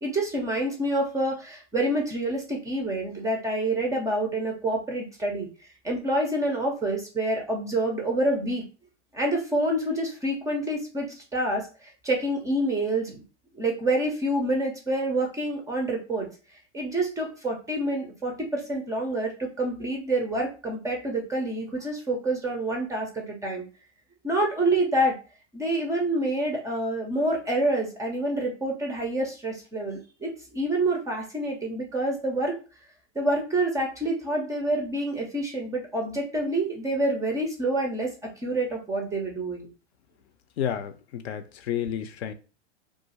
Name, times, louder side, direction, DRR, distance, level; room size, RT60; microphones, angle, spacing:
voice 1, 0.0-5.5 5.8-8.6 9.1-13.2 13.5-16.3 16.7-23.6 24.2-25.2 25.5-32.6 33.1-39.7, right 1 dB, 10° right, 0.4 m, -27 dB
voice 2, 40.6-42.3, left 9 dB, 65° left, 0.5 m, -31 dB
2.4 x 2.3 x 4.0 m
hypercardioid pair, 110°, 36 cm